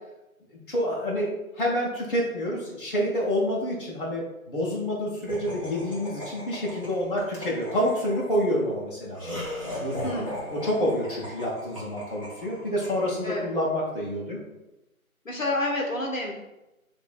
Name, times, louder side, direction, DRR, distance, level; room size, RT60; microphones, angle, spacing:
voice 1, 0.5-1.3 1.6-9.4 9.8-10.2 10.6-14.4, equal, 40° left, -5 dB, 0.9 m, -28 dB
Laughter, 5.3-13.6, left 1 dB, 25° right, 0.7 m, -38 dB
voice 2, 10.0-10.4 13.2-13.5 15.2-16.3, left 1 dB, 65° left, -1 dB, 1.0 m, -29 dB
6.5 x 2.6 x 2.3 m, 0.95 s
figure-of-eight pair, 155°, 43 cm